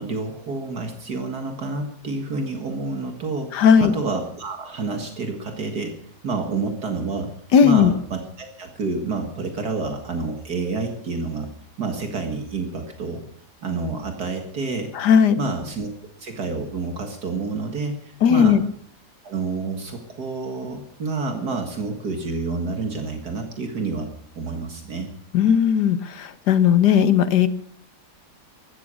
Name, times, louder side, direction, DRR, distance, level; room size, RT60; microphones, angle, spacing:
voice 1, 0.0-6.0 6.2-7.3 7.6-11.5 11.8-13.2 13.6-14.9 15.4-15.9 16.2-18.6 19.2-24.1 24.4-25.1, right 3 dB, 65° right, 4 dB, 2.3 m, -29 dB
voice 2, 3.5-3.9 7.5-7.9 14.9-15.4 18.2-18.6 25.3-27.5, left 7 dB, 75° left, 13 dB, 1.6 m, -16 dB
15.0 x 13.0 x 6.4 m, 0.65 s
omnidirectional pair, 1.8 m